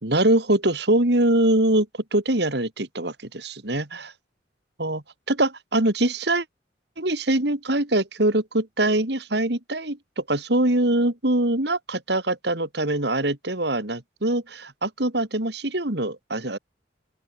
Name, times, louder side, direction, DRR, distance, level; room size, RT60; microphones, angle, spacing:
voice 1, 0.0-4.1 4.8-6.4 7.0-16.6, right 1 dB, 55° right, 2.6 m, -23 dB
open air
head